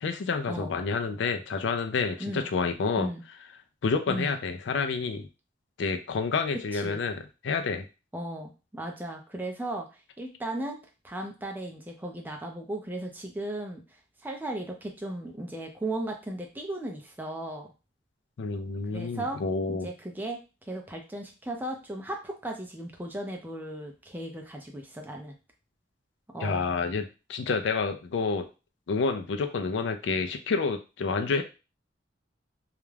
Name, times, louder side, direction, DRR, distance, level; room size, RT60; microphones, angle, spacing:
voice 1, 0.0-3.1 3.8-5.3 5.8-7.8 18.4-19.9 26.4-28.4 28.9-31.4, left 4 dB, 70° left, 6 dB, 0.4 m, -29 dB
voice 2, 8.1-9.9 10.2-10.8 11.0-13.8 14.2-17.7 18.9-19.4 19.7-20.4 20.7-25.4 26.3-26.7, right 1 dB, 10° right, 2 dB, 0.4 m, -36 dB
2.4 x 2.1 x 3.1 m, 0.31 s
head